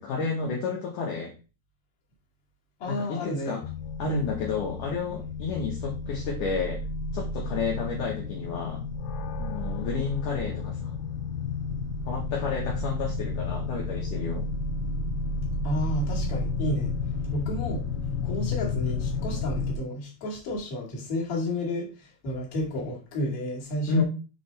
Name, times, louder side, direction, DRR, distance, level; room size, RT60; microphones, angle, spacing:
voice 1, 0.0-1.3 2.9-3.6 4.0-6.8 7.1-8.8 9.4-10.8 12.1-14.5 23.9-24.0, left 5 dB, 65° left, 2.3 m, -31 dB
voice 2, 2.8-3.6 15.6-17.0 17.3-24.0, left 1 dB, 45° left, 2.4 m, -31 dB
sound 1, 3.6-19.8, left 3 dB, 90° left, 2.7 m, -31 dB
6.9 x 5.1 x 3.2 m
omnidirectional pair, 4.7 m